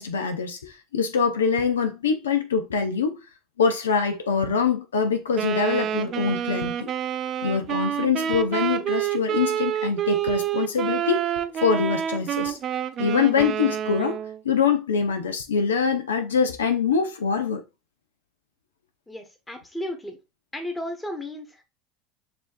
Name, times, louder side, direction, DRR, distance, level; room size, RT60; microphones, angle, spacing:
voice 1, 0.0-3.2 3.6-6.9 7.4-11.3 11.6-12.6 13.0-14.2 14.4-17.6, left 5 dB, 90° left, 0.5 m, -24 dB
Wind instrument woodwind instrument, 5.3-14.4, right 10 dB, 45° right, 0.4 m, -28 dB
voice 2, 19.1-20.2 20.5-21.6, left 1 dB, 10° left, 1.3 m, -34 dB
6.1 x 2.7 x 2.6 m
hypercardioid pair, 80°, 0 cm